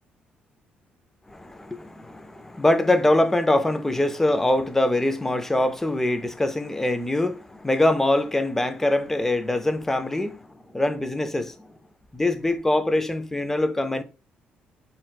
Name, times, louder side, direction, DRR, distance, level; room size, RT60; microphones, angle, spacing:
voice 1, 1.3-11.5 12.1-14.0, left 1 dB, 10° left, 0.3 m, -23 dB
3.9 x 2.1 x 2.3 m
cardioid pair, 95°, 4 cm